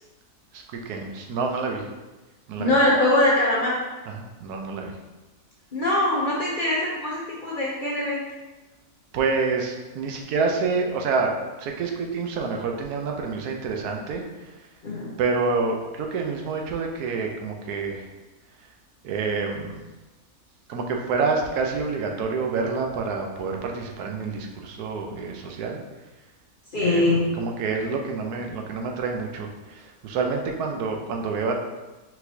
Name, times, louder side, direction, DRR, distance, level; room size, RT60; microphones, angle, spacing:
voice 1, 0.5-1.9 2.5-2.8 4.1-5.0 9.1-14.7 15.2-18.1 18.6-18.7 19.0-19.8 20.7-25.8 26.8-31.5, right 4 dB, 85° right, 2 dB, 1.2 m, -28 dB
voice 2, 2.6-3.8 5.7-8.2 14.8-15.1 26.7-27.2, left 1 dB, 50° left, -5 dB, 0.6 m, -22 dB
4.3 x 4.1 x 2.7 m, 1.1 s
omnidirectional pair, 1.6 m